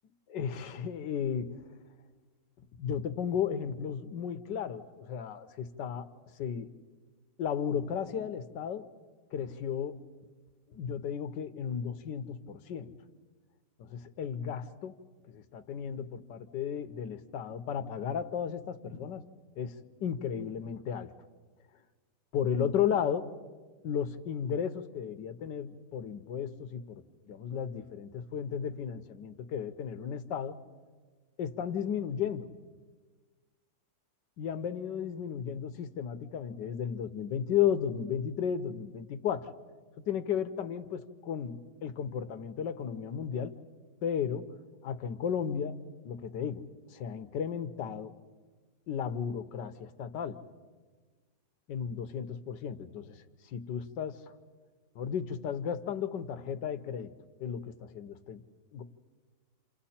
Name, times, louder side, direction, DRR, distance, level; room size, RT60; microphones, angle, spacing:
voice 1, 0.3-1.6 2.8-6.1 6.4-6.7 7.4-8.8 9.3-10.0 10.7-12.9 13.8-14.9 15.3-19.2 19.6-21.1 22.3-23.3 23.8-30.6 31.4-32.5 34.4-39.5 40.0-43.6 44.0-44.5 44.8-48.1 48.9-50.4 51.7-53.2 53.5-54.2 54.9-57.1 57.4-58.4 58.7-58.8, left 8 dB, 80° left, 10 dB, 1.6 m, -34 dB
28.5 x 28.5 x 4.3 m, 1.4 s
omnidirectional pair, 1.9 m